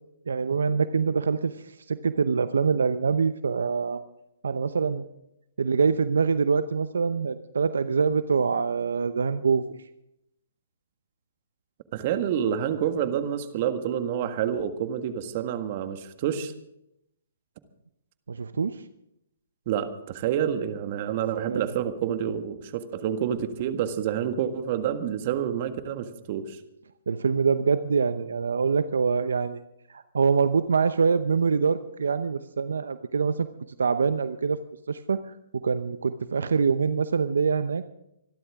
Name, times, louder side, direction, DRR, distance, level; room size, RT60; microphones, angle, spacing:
voice 1, 0.3-4.0 4.4-5.0 5.6-9.6 18.3-18.8 21.5-21.7 27.1-29.6 29.9-33.5 33.8-34.6 34.9-37.8, right 5 dB, 80° right, 12 dB, 0.8 m, -25 dB
voice 2, 11.9-16.5 19.6-26.6, right 9 dB, 45° right, 9 dB, 1.6 m, -28 dB
25.5 x 12.5 x 3.6 m, 0.81 s
hypercardioid pair, 135°, 0 cm